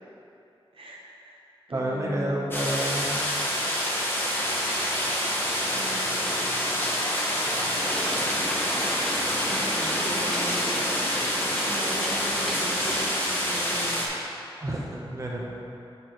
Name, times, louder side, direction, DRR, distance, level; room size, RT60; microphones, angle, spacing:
voice 1, 0.7-1.4 1.7-2.4 5.6-6.6 9.4-11.1 11.6-14.0, right 1 dB, 70° right, -3 dB, 0.9 m, -38 dB
voice 2, 1.7-3.3 14.6-15.5, right 1 dB, 35° right, -3 dB, 0.9 m, -30 dB
sound 1, 2.5-14.1, equal, 20° left, 1.1 m, -27 dB
sound 2, 7.8-13.1, equal, 5° left, 0.9 m, -35 dB
6.9 x 4.7 x 4.4 m, 2.7 s
wide cardioid pair, 100°, 10 cm